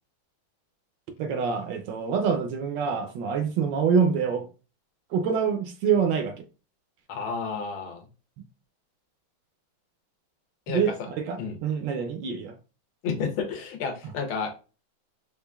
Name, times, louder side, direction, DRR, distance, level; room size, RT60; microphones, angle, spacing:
voice 1, 1.2-4.5 5.1-6.4 10.7-12.5, right 6 dB, 75° right, 1.1 m, -26 dB
voice 2, 7.1-8.0 10.7-10.8 11.4-11.6 13.0-14.6, left 5 dB, 80° left, 1.6 m, -31 dB
4.9 x 2.4 x 2.3 m
omnidirectional pair, 2.2 m